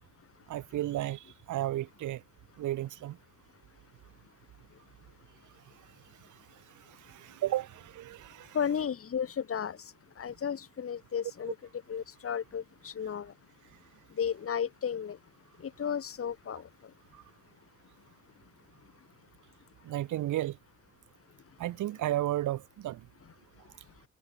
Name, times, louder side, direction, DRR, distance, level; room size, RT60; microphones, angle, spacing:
voice 1, 0.5-2.2 2.6-3.2 7.1-8.6 19.9-20.6 21.6-23.0, right 14 dB, 80° right, 2.1 m, -33 dB
voice 2, 8.5-11.5 11.9-13.3 14.1-15.2 15.6-16.9, left 8 dB, 50° left, 3.0 m, -34 dB
cardioid pair, 90°, 30 cm